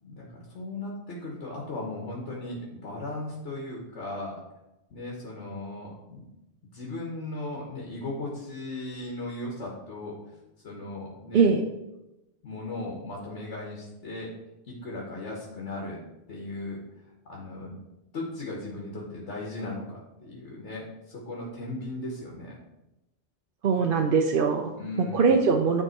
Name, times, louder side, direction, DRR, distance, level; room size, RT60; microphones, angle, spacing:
voice 1, 0.0-4.4 4.9-6.2 6.7-10.2 10.6-11.5 12.4-14.3 14.7-16.0 16.3-17.8 18.1-22.6 24.8-25.4, left 2 dB, 80° left, -2 dB, 1.5 m, -37 dB
voice 2, 23.6-24.7 25.1-25.8, right 5 dB, 60° right, 3 dB, 0.7 m, -21 dB
9.6 x 3.5 x 4.4 m, 0.94 s
omnidirectional pair, 1.2 m